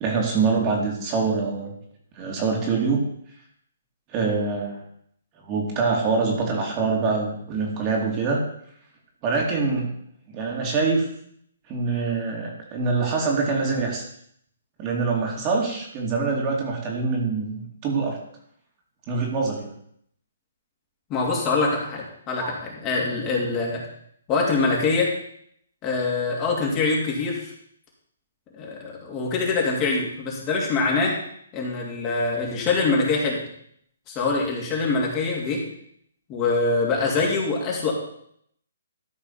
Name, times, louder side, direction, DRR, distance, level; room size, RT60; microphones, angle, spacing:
voice 1, 0.0-1.7 2.1-3.0 4.1-4.8 5.4-8.4 9.2-9.9 10.3-11.1 11.7-14.0 14.8-18.2 19.1-19.7 22.4-22.5, right 4 dB, 30° right, -1 dB, 2.5 m, -24 dB
voice 2, 21.1-23.8 24.3-25.1 25.8-27.5 28.5-31.2 31.5-33.4 34.1-35.6 36.3-37.9, left 3 dB, 25° left, -2 dB, 2.7 m, -24 dB
13.0 x 4.9 x 5.6 m, 0.68 s
hypercardioid pair, 145°, 0 cm